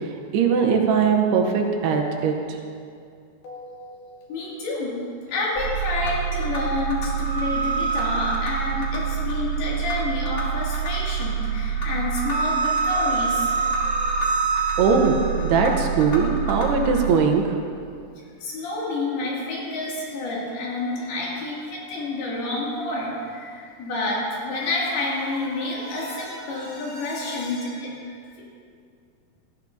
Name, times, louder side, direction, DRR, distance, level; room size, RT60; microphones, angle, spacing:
voice 1, 0.3-2.3 14.8-15.2 15.4-17.4, right 5 dB, 85° right, 3 dB, 3.1 m, -20 dB
voice 2, 3.4-5.0 5.3-14.9 18.4-28.4, left 2 dB, 70° left, -5 dB, 4.6 m, -29 dB
sound 1, 5.6-17.1, right 5 dB, 30° left, 2.0 m, -26 dB
18.5 x 14.0 x 2.9 m, 2.3 s
omnidirectional pair, 4.6 m